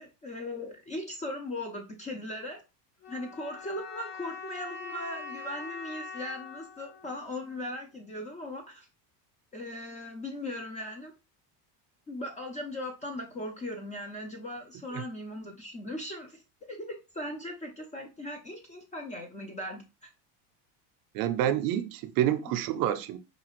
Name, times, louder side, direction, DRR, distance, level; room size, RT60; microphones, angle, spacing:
voice 1, 0.0-2.6 3.1-8.9 9.5-11.1 12.1-16.4 16.7-20.1, left 1 dB, 20° left, 0.3 m, -38 dB
sound 1, 3.0-8.0, left 5 dB, 35° left, 1.5 m, -43 dB
voice 2, 21.1-23.2, right 11 dB, 50° right, 0.5 m, -28 dB
4.9 x 2.4 x 3.0 m
cardioid pair, 140°, 44 cm